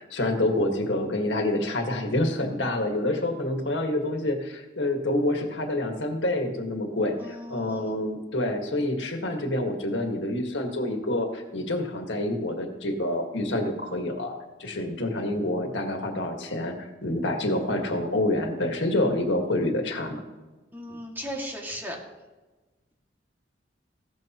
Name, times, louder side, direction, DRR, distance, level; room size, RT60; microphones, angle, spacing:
voice 1, 0.0-14.3 14.6-20.2, left 1 dB, 90° left, 4 dB, 1.7 m, -27 dB
voice 2, 7.2-7.8 20.7-22.0, equal, 10° right, -1 dB, 2.1 m, -36 dB
15.5 x 13.0 x 3.0 m, 1.2 s
head